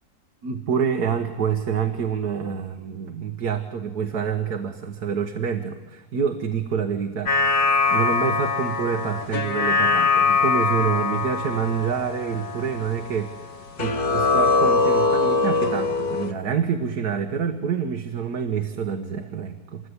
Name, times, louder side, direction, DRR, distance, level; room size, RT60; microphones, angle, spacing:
voice 1, 0.4-13.3 13.8-19.9, right 7 dB, 90° right, 6 dB, 1.9 m, -27 dB
sound 1, 7.3-13.5 13.8-16.3, left 4 dB, 75° left, 2.2 m, -22 dB
26.0 x 21.5 x 9.8 m, 1.1 s
omnidirectional pair, 1.6 m